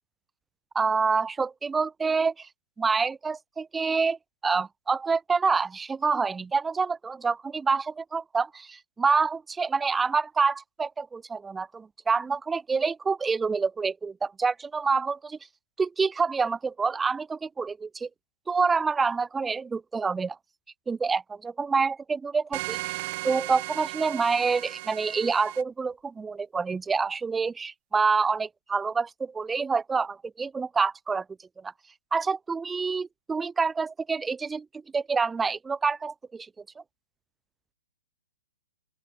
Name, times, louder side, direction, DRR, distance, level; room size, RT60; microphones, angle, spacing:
voice 1, 0.7-2.5 2.8-4.2 4.4-15.4 15.8-18.1 18.5-20.4 20.9-22.8 23.2-31.2 31.6-31.7 32.1-34.7 34.9-36.5, right 5 dB, 10° right, 0.5 m, -27 dB
sound 1, 22.5-25.6, right 23 dB, 40° right, 2.1 m, -36 dB
open air
hypercardioid pair, 135°, 0 cm